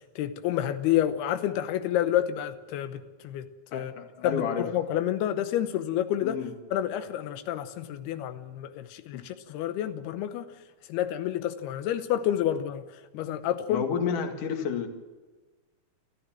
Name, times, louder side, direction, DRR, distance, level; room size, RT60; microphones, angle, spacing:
voice 1, 0.0-3.9 4.2-6.4 6.7-10.5 10.9-12.8 13.1-13.9, left 11 dB, 90° left, 9 dB, 3.0 m, -29 dB
voice 2, 3.7-4.7 6.2-6.5 9.1-9.2 13.7-14.9, left 7 dB, 60° left, 5 dB, 3.3 m, -30 dB
27.5 x 14.0 x 7.5 m, 1.3 s
omnidirectional pair, 4.4 m